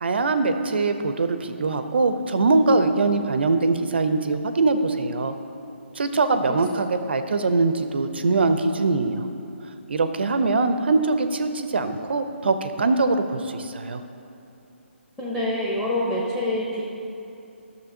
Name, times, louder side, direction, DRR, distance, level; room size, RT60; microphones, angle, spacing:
voice 1, 0.0-5.3 6.0-9.3 9.9-14.0, right 3 dB, 55° right, 9 dB, 0.6 m, -22 dB
voice 2, 15.2-16.8, left 1 dB, 5° left, -5 dB, 0.8 m, -26 dB
12.0 x 6.7 x 2.7 m, 2.8 s
figure-of-eight pair, 140°, 7 cm